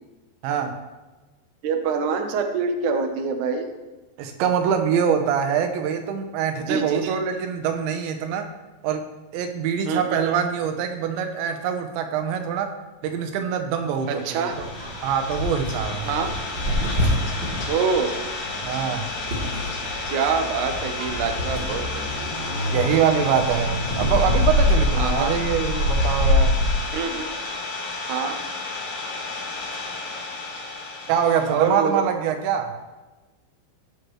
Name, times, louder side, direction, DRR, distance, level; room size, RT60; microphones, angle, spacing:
voice 1, 0.4-0.8 4.2-8.5 8.8-12.7 13.0-14.5 15.0-16.1 18.6-19.0 22.7-26.5 31.1-32.8, right 7 dB, 90° right, 6 dB, 3.3 m, -24 dB
voice 2, 1.6-3.7 6.7-7.0 9.9-10.2 14.1-14.6 16.1-16.4 17.7-18.1 20.1-22.0 25.0-25.3 26.9-27.3 28.1-28.4 31.5-32.0, right 5 dB, 70° right, 4 dB, 1.9 m, -25 dB
Idling, 14.0-31.7, left 3 dB, 75° left, 5.2 m, -32 dB
sound 1, 14.5-26.7, left 1 dB, 30° right, 3.0 m, -25 dB
19.5 x 6.8 x 3.2 m, 1.2 s
omnidirectional pair, 5.0 m